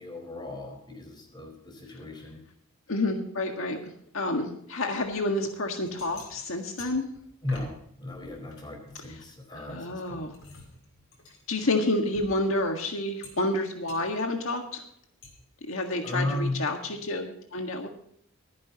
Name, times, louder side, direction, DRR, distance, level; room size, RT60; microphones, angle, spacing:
voice 1, 0.0-2.4 7.4-10.2 16.0-16.6, left 1 dB, 20° left, 3 dB, 4.6 m, -35 dB
voice 2, 2.9-3.8 4.1-7.1 9.1-9.2 9.5-10.3 11.5-14.8 15.7-17.9, left 2 dB, 75° left, 3 dB, 1.7 m, -29 dB
sound 1, 5.0-5.2 5.6-7.8 8.1-9.6 10.0-12.8 13.2-13.6 13.9-14.0 15.2-15.3, left 2 dB, 90° left, 5.8 m, -48 dB
24.5 x 10.5 x 2.9 m, 0.70 s
head